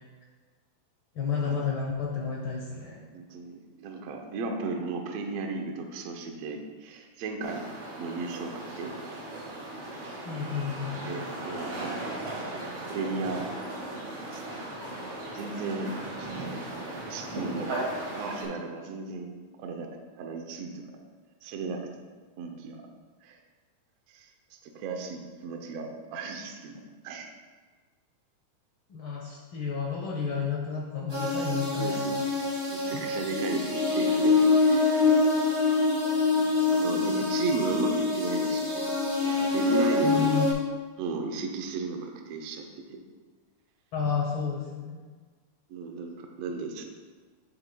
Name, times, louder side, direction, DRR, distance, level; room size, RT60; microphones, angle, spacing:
voice 1, 1.2-3.0 10.2-11.1 28.9-32.2 32.9-33.0 40.0-40.5 43.9-45.0, left 6 dB, 80° left, -3 dB, 1.1 m, -31 dB
voice 2, 3.1-7.6 8.0-8.9 11.0-12.2 12.9-13.5 14.3-14.4 15.3-15.9 16.2-16.6 16.9-17.8 18.2-19.9 20.2-20.8 21.4-21.8 22.4-22.8 23.2-23.4 24.1-26.8 27.0-27.3 31.8-32.2 32.7-35.1 36.4-38.9 39.2-40.4 41.0-43.0 45.7-46.9, right 4 dB, 70° right, 3 dB, 1.6 m, -35 dB
sound 1, 7.4-18.4, right 1 dB, 55° right, 2.7 m, -37 dB
sound 2, 31.1-40.5, left 3 dB, 25° right, 1.1 m, -25 dB
9.0 x 7.5 x 2.2 m, 1.4 s
omnidirectional pair, 3.5 m